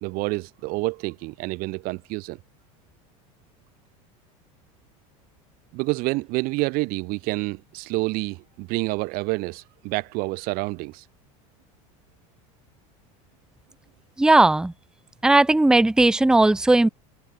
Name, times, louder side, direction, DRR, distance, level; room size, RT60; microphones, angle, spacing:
voice 1, 0.0-2.4 5.7-11.0, right 24 dB, 55° right, 1.5 m, -28 dB
voice 2, 14.2-14.7 15.2-16.9, right 2 dB, 5° right, 0.7 m, -17 dB
supercardioid pair, 120°, 17 cm